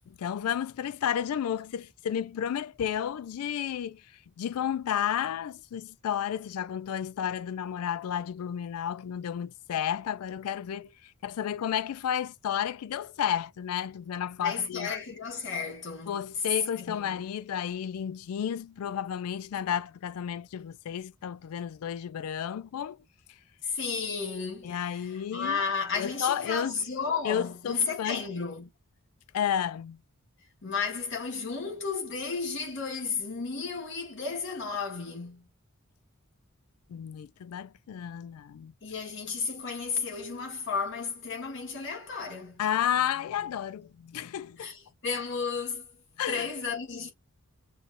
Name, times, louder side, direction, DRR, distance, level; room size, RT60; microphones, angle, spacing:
voice 1, 0.1-4.0 4.4-14.9 16.1-23.0 24.6-25.6 26.0-26.8 27.2-28.3 29.3-30.0 36.9-38.7 42.6-44.7 46.2-46.5, left 9 dB, 85° left, 0.3 m, -32 dB
voice 2, 14.4-16.2 16.9-17.2 23.6-28.7 30.6-35.4 38.8-42.6 44.6-45.9 46.3-47.1, left 5 dB, 55° left, 1.5 m, -33 dB
6.6 x 2.5 x 2.5 m
head